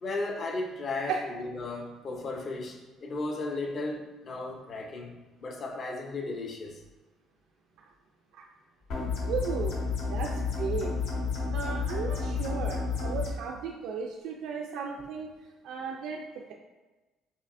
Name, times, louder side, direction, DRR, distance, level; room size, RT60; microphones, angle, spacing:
voice 1, 0.0-5.1 5.4-6.8, left 2 dB, 40° left, 2 dB, 0.6 m, -35 dB
sound 1, 8.9-13.3, left 4 dB, 70° left, 1.0 m, -31 dB
voice 2, 9.3-9.7 10.1-10.9 11.5-15.3 15.6-16.2, right 6 dB, 75° right, 0 dB, 0.4 m, -35 dB
5.5 x 3.3 x 2.5 m, 1.2 s
cardioid pair, 135°, 0 cm